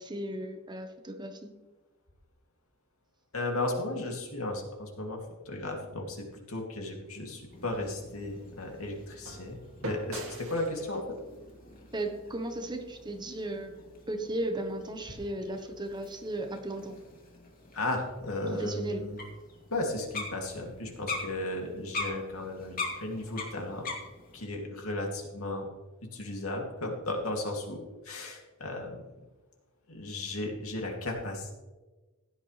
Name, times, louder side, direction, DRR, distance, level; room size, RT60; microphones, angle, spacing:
voice 1, 0.0-1.5 11.9-13.7 14.1-17.0 18.6-19.0, right 1 dB, 20° right, 5 dB, 1.1 m, -35 dB
voice 2, 3.3-5.2 5.4-11.2 17.7-19.2 19.7-23.9 24.3-25.7 26.0-29.1 29.9-31.5, left 2 dB, 85° left, 1 dB, 2.7 m, -35 dB
sound 1, 7.0-13.2, right 1 dB, 85° right, 2.3 m, -45 dB
sound 2, 7.5-24.5, left 3 dB, 40° left, 2.7 m, -44 dB
16.0 x 9.8 x 3.3 m, 1.2 s
head